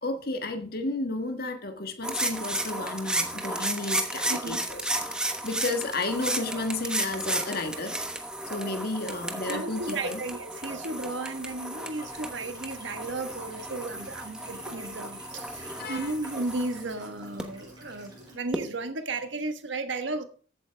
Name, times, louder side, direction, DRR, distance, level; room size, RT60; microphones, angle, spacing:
voice 1, 0.0-7.9 8.5-10.2 15.7-16.1, left 2 dB, 50° left, 1.5 m, -32 dB
sound 1, 2.0-17.4 18.5-18.6, right 1 dB, 5° right, 1.1 m, -33 dB
voice 2, 4.3-4.6 9.5-20.2, right 2 dB, 65° right, 1.4 m, -34 dB
sound 2, 11.7-18.3, right 1 dB, 25° right, 5.4 m, -50 dB
14.5 x 8.6 x 3.4 m
head